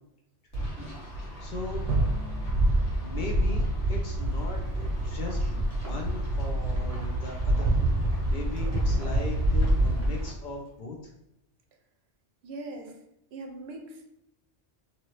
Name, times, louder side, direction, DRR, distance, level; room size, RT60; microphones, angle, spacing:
Wind, 0.5-10.3, right 1 dB, 75° left, 1.4 m, -27 dB
voice 1, 1.4-1.9 3.0-3.6 3.9-7.8 8.3-11.1, left 3 dB, 55° left, 0 dB, 0.6 m, -38 dB
Drum, 1.9-4.8, right 4 dB, 85° right, 0.9 m, -41 dB
Wind 2, 4.2-10.7, right 1 dB, 15° right, 0.7 m, -42 dB
voice 2, 12.4-13.0 13.3-14.1, right 2 dB, 70° right, 2 dB, 0.8 m, -40 dB
2.7 x 2.6 x 3.1 m, 0.83 s
omnidirectional pair, 1.2 m